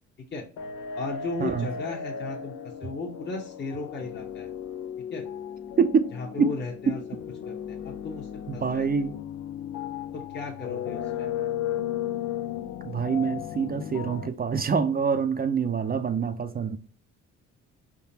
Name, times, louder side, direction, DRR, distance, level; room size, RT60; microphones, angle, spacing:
sound 1, 0.6-14.3, left 9 dB, 85° left, 0.5 m, -35 dB
voice 1, 1.0-4.5 5.1-5.2 6.1-7.0 7.5-8.3 8.5-8.9 10.1-11.3, left 3 dB, 35° left, 0.9 m, -36 dB
voice 2, 5.8-6.1 6.4-6.5 8.5-9.1 12.8-16.8, right 6 dB, 30° right, 0.5 m, -25 dB
4.9 x 3.7 x 2.8 m
cardioid pair, 90°, 30 cm